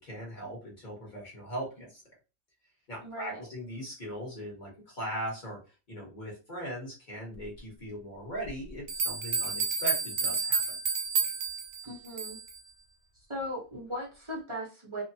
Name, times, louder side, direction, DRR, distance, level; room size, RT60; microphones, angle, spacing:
voice 1, 0.0-2.0 2.9-5.6 5.9-10.7, equal, 35° left, -3 dB, 1.1 m, -39 dB
voice 2, 3.0-3.4 11.8-12.4 13.3-15.0, equal, 30° right, -4 dB, 0.6 m, -38 dB
sound 1, 8.5-8.6 8.9-12.6, right 5 dB, 75° right, 1.2 m, -30 dB
2.8 x 2.1 x 2.6 m, 0.32 s
omnidirectional pair, 1.6 m